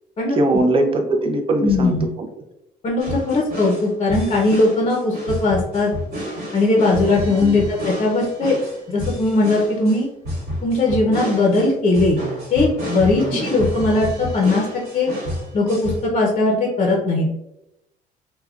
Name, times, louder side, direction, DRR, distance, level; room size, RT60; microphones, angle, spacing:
voice 1, 0.4-2.3 7.4-7.5 13.3-13.4, right 2 dB, 30° right, 4 dB, 0.5 m, -20 dB
voice 2, 1.6-2.0 2.8-5.9 6.5-8.6 8.9-10.1 10.6-12.2 12.5-14.7 14.9-15.1 15.5-17.3, left 2 dB, 35° left, -2 dB, 0.6 m, -19 dB
sound 1, 3.0-16.1, equal, 75° right, 1.2 m, -29 dB
3.4 x 2.2 x 2.3 m, 0.85 s
cardioid pair, 110°, 17 cm